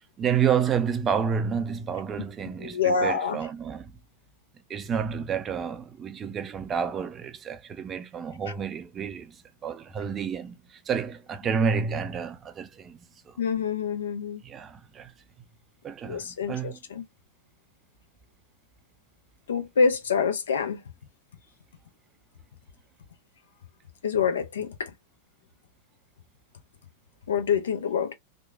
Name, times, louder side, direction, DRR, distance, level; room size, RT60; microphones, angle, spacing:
voice 1, 0.2-3.9 4.7-9.3 9.6-10.5 10.9-13.0 13.3-13.4 14.4-15.1 15.8-16.8, right 7 dB, 25° right, 0.4 m, -29 dB
voice 2, 2.5-3.4 13.4-14.4 16.0-17.0 19.5-20.8 24.0-24.9 27.3-28.1, left 6 dB, 65° left, 0.6 m, -26 dB
3.0 x 2.2 x 2.3 m
figure-of-eight pair, 90°, 0 cm